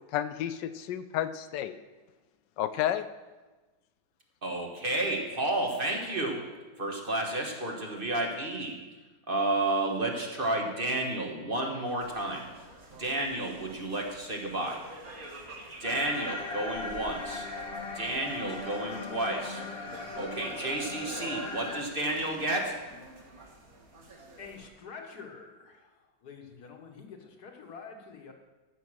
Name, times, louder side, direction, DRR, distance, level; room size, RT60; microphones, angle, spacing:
voice 1, 0.1-1.8 2.6-3.1, left 11 dB, 80° left, 12 dB, 1.2 m, -31 dB
voice 2, 4.4-6.4 6.8-8.8 9.3-12.5 13.0-14.8 15.8-17.5 17.9-19.6 20.1-22.7, right 2 dB, 30° right, 1 dB, 1.6 m, -31 dB
sound 1, 12.0-24.7, right 2 dB, 50° right, 2.1 m, -47 dB
sound 2, 15.8-21.8, left 3 dB, 35° left, 1.3 m, -39 dB
voice 3, 24.4-25.9 26.2-28.3, left 5 dB, 60° left, 3 dB, 1.8 m, -47 dB
14.0 x 6.8 x 6.3 m, 1.2 s
omnidirectional pair, 2.0 m